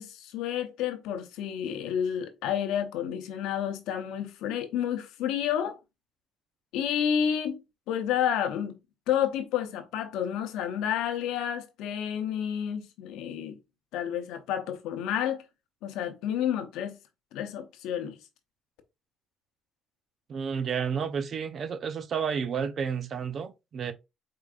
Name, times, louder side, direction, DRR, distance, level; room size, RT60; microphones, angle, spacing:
voice 1, 0.0-5.8 6.7-7.6 7.9-8.8 9.1-13.6 13.9-15.4 15.8-17.0 17.3-18.2, left 9 dB, 90° left, 0.7 m, -30 dB
voice 2, 20.3-23.9, right 6 dB, 50° right, 0.6 m, -31 dB
5.0 x 3.8 x 2.4 m
cardioid pair, 100°, 0 cm